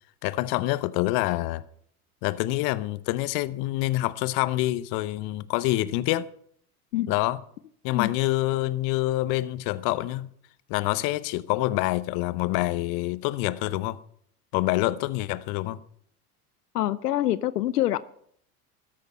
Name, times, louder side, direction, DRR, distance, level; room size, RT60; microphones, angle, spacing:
voice 1, 0.2-1.6 2.2-6.3 7.1-7.4 7.8-10.3 10.7-14.0 14.5-15.8, left 17 dB, 50° left, 0.8 m, -26 dB
voice 2, 16.7-18.0, left 14 dB, 85° left, 0.6 m, -25 dB
13.5 x 10.5 x 5.5 m
hypercardioid pair, 90°, 46 cm